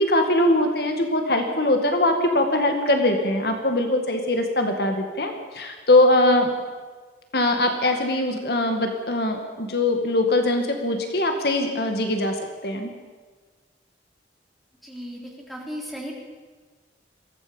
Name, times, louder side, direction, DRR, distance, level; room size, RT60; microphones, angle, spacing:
voice 1, 0.0-6.5 7.3-12.9, left 1 dB, 55° left, 4 dB, 2.1 m, -22 dB
voice 2, 14.8-16.2, equal, ahead, -2 dB, 3.5 m, -36 dB
22.5 x 16.0 x 7.2 m, 1.4 s
head